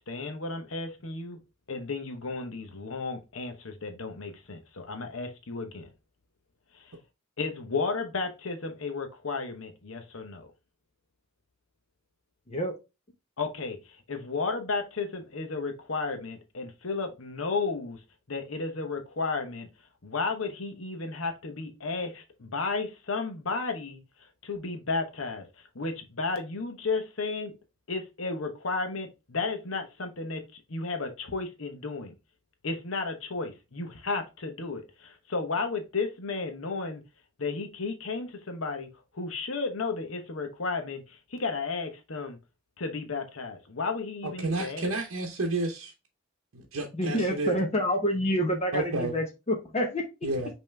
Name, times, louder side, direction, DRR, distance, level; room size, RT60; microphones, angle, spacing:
voice 1, 0.0-1.4 1.7-5.9 6.7-6.9 7.4-10.5 13.4-18.0 18.3-19.7 20.0-24.0 24.4-25.4 25.7-27.5 27.9-30.4 30.7-32.1 32.6-37.0 37.4-38.9 39.1-42.4 42.8-44.9, left 4 dB, 70° left, 1.0 m, -33 dB
voice 2, 44.2-45.9 46.5-47.5 48.7-49.1 50.2-50.5, right 2 dB, 70° right, 0.8 m, -30 dB
voice 3, 46.9-50.0, equal, 30° left, 0.8 m, -27 dB
5.5 x 3.0 x 3.2 m
head